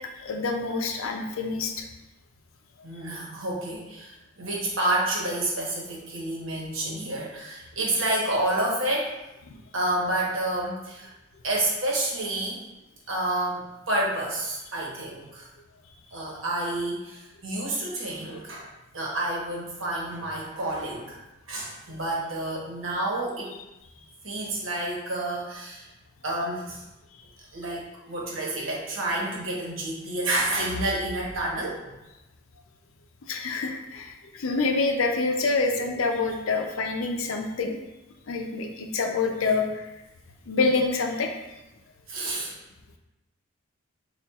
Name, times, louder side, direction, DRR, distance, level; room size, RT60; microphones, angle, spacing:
voice 1, 0.2-1.8 9.5-9.6 33.3-37.8 38.3-39.9 40.5-41.3, left 3 dB, 90° left, 3 dB, 0.5 m, -26 dB
voice 2, 2.8-9.1 9.7-11.1 11.4-12.6 13.1-15.5 16.1-18.7 18.9-21.2 21.5-23.5 24.2-25.9 26.2-26.8 27.5-31.8 42.1-42.6, right 1 dB, 80° right, -3 dB, 1.1 m, -29 dB
6.5 x 2.4 x 2.4 m, 1.0 s
head